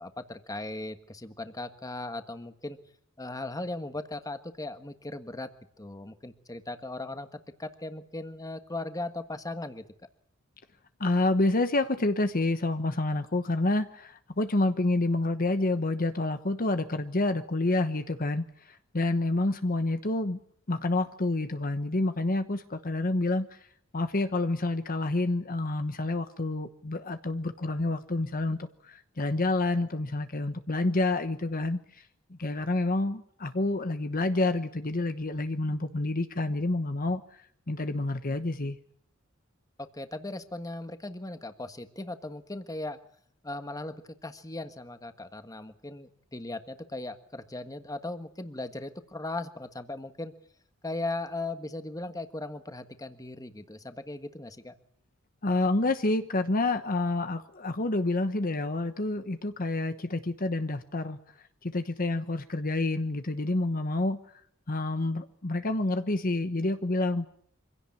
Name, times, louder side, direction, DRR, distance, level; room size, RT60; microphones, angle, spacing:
voice 1, 0.0-2.8 3.2-5.5 5.8-9.8 39.8-43.0 43.4-44.0 44.2-50.3 50.8-54.8, left 2 dB, 15° left, 9 dB, 1.5 m, -38 dB
voice 2, 11.0-20.4 20.7-23.6 23.9-31.8 32.3-37.2 37.7-38.8 55.4-61.2 61.6-64.2 64.7-67.3, left 2 dB, 45° left, 9 dB, 1.1 m, -28 dB
25.5 x 16.5 x 8.7 m, 0.63 s
head